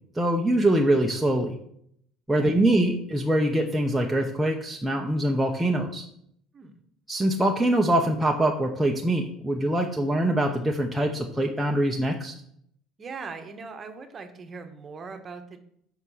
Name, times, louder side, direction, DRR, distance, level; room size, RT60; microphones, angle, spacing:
voice 1, 0.1-1.6 2.3-6.0 7.1-12.3, right 1 dB, 5° right, 0 dB, 0.7 m, -24 dB
voice 2, 2.4-2.7 6.5-6.8 13.0-15.6, right 4 dB, 25° right, 6 dB, 1.1 m, -40 dB
7.2 x 5.6 x 6.2 m, 0.69 s
cardioid pair, 155°, 0 cm